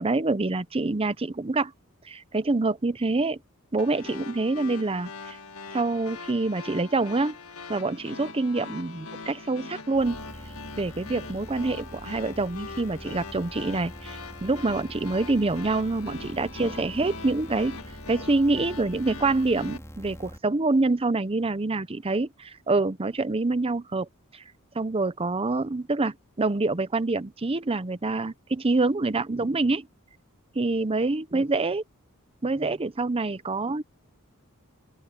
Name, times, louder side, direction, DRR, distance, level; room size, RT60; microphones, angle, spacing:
voice 1, 0.0-1.7 2.0-3.4 3.7-5.4 5.7-7.4 7.7-10.2 10.8-17.8 18.1-24.1 24.3-24.4 24.7-29.9 30.5-31.8 32.4-33.8, right 3 dB, 25° right, 0.7 m, -26 dB
sound 1, 3.8-19.8, left 4 dB, 75° left, 1.7 m, -42 dB
sound 2, 9.9-20.4, equal, 15° left, 3.5 m, -44 dB
open air
head